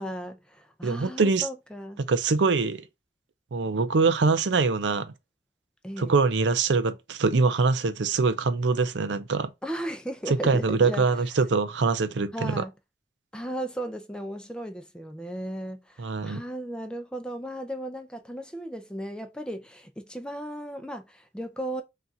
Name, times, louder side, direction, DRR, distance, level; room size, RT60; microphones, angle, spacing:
voice 1, 0.0-2.0 5.8-6.2 9.6-11.2 12.3-12.7 13.3-21.8, right 1 dB, 5° left, 0.5 m, -36 dB
voice 2, 0.8-1.5 2.0-2.8 3.5-5.1 6.0-9.5 10.3-12.6 16.0-16.4, right 4 dB, 85° right, 0.5 m, -24 dB
5.5 x 2.5 x 2.7 m
head